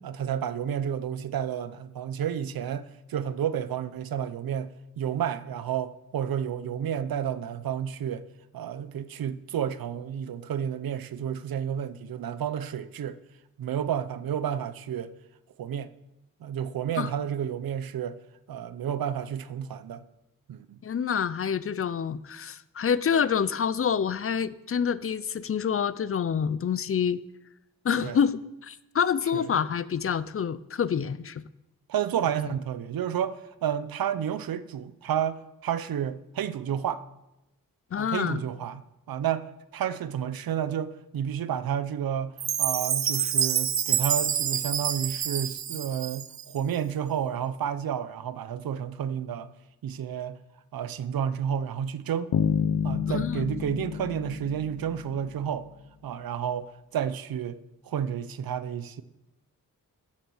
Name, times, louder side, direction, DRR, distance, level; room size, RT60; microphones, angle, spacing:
voice 1, 0.0-8.3 8.5-13.2 13.6-15.1 15.6-15.9 16.4-18.2 18.5-20.0 20.5-20.8 28.0-28.2 29.3-29.6 31.9-37.0 38.0-49.5 49.8-50.4 50.7-52.3 52.8-55.7 56.0-59.0, right 9 dB, 80° right, 0.8 m, -31 dB
voice 2, 20.8-27.2 27.8-31.4 37.9-38.4 53.1-53.4, left 7 dB, 40° left, 0.5 m, -27 dB
Chime, 42.4-46.6, right 9 dB, 50° right, 0.6 m, -27 dB
sound 1, 52.3-55.4, left 7 dB, 80° left, 0.8 m, -29 dB
14.5 x 7.3 x 7.1 m
wide cardioid pair, 150°, 35 cm